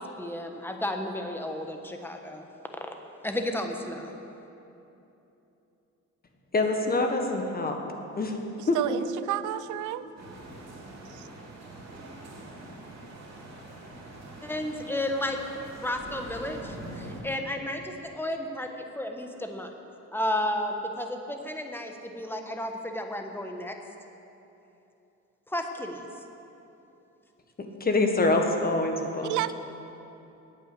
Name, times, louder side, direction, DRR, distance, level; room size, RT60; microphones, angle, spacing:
voice 1, 0.2-2.4 3.2-4.2 14.4-15.4 15.8-19.7 20.1-23.7 25.5-26.0, left 1 dB, 5° left, 4 dB, 1.2 m, -32 dB
voice 2, 6.5-7.8 8.2-8.3 8.7-9.0 27.6-29.4, left 2 dB, 30° left, 3 dB, 1.4 m, -25 dB
voice 3, 8.6-10.0 11.1-11.3 29.2-29.5, right 14 dB, 85° right, 14 dB, 0.5 m, -31 dB
sound 1, 10.2-17.2, right 1 dB, 60° right, 2.8 m, -44 dB
8.8 x 8.6 x 8.2 m, 2.9 s
cardioid pair, 90°, 30 cm